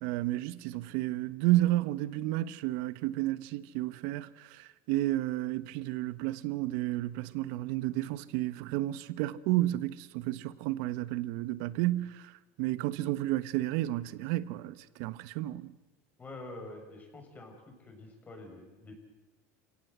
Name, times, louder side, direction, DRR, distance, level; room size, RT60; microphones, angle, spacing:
voice 1, 0.0-12.3 12.6-15.7, right 16 dB, 70° right, 1.2 m, -31 dB
voice 2, 16.2-19.0, left 2 dB, 20° left, 7.0 m, -47 dB
29.0 x 17.5 x 8.1 m
supercardioid pair, 125°, 8 cm